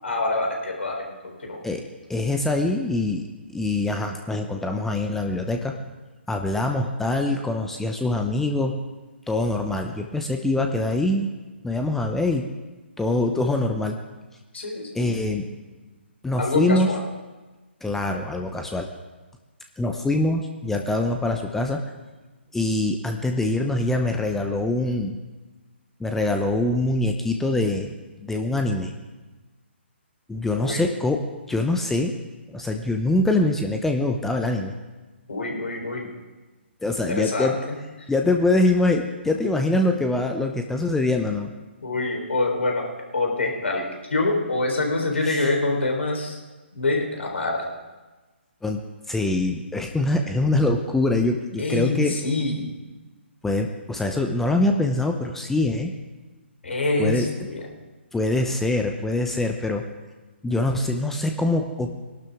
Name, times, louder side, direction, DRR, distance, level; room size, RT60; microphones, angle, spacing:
voice 1, 0.0-1.6 14.5-15.2 16.4-17.0 30.5-30.8 35.3-36.1 37.1-37.8 41.8-42.9 43.1-46.4 46.7-47.6 51.6-52.7 56.6-57.6, left 2 dB, 75° left, 1 dB, 3.8 m, -26 dB
voice 2, 2.1-5.8 6.3-8.8 9.3-11.3 11.6-12.5 13.0-14.0 14.9-15.5 16.2-16.9 17.8-18.9 19.8-21.8 22.5-25.2 26.0-27.9 28.2-28.9 30.3-32.1 32.5-34.7 36.8-37.6 38.1-41.5 45.2-45.5 48.6-48.8 49.1-52.1 53.4-55.9 57.0-57.3 58.1-59.8 60.4-61.9, left 2 dB, 5° left, 4 dB, 0.6 m, -24 dB
20.0 x 12.0 x 3.6 m, 1.2 s
figure-of-eight pair, 140°, 7 cm